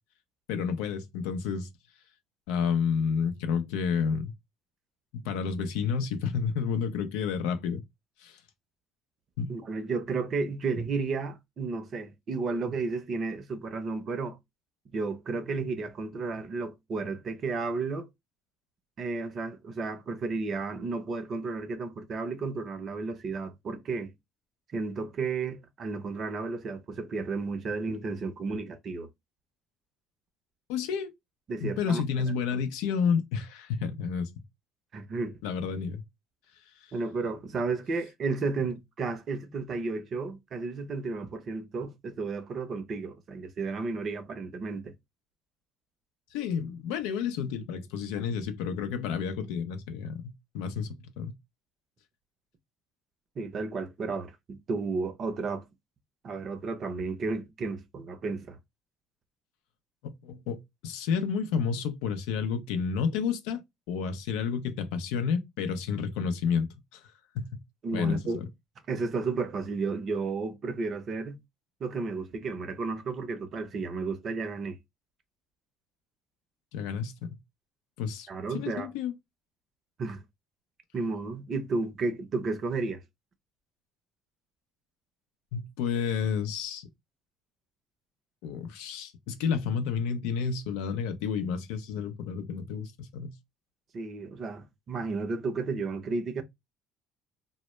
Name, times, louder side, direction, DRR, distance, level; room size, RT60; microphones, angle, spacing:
voice 1, 0.5-1.7 2.5-4.3 5.1-7.8 8.2-8.4 9.4-9.6 30.7-31.1 31.6-34.3 35.4-36.0 46.3-51.3 60.0-63.6 63.9-67.0 67.3-67.6 67.9-68.4 76.7-77.4 78.0-79.1 85.5-86.9 88.4-93.3, left 6 dB, 80° left, 0.4 m, -30 dB
voice 2, 9.5-14.4 14.9-18.1 19.0-24.1 24.7-29.1 31.5-32.0 34.9-35.4 36.9-44.9 53.4-55.6 56.2-58.6 67.8-68.4 68.9-71.4 71.8-74.8 78.3-78.9 80.0-80.2 80.9-83.0 93.9-96.4, right 4 dB, 50° right, 0.6 m, -33 dB
2.0 x 2.0 x 3.0 m
supercardioid pair, 75°, 0 cm